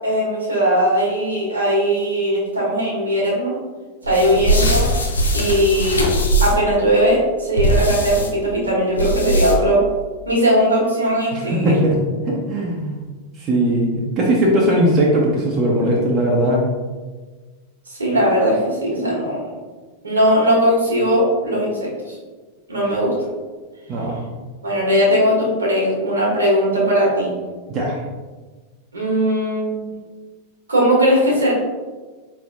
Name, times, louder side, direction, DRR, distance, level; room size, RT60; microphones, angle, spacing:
voice 1, 0.0-3.5 4.0-4.9 5.3-6.1 6.4-9.8 10.2-11.8 17.9-19.4 20.0-22.2 22.7-23.3 24.6-27.4 28.9-29.9 30.7-31.5, equal, 75° right, -4 dB, 1.4 m, -19 dB
sound 1, 4.0-6.7 7.6-8.3 9.0-9.8, right 1 dB, 75° left, 0.6 m, -20 dB
voice 2, 11.3-12.0 12.3-13.0 13.4-16.6 23.9-24.2 27.7-28.0, right 1 dB, 35° right, -3 dB, 0.7 m, -19 dB
4.9 x 3.3 x 2.5 m, 1.3 s
figure-of-eight pair, 90°, 0 cm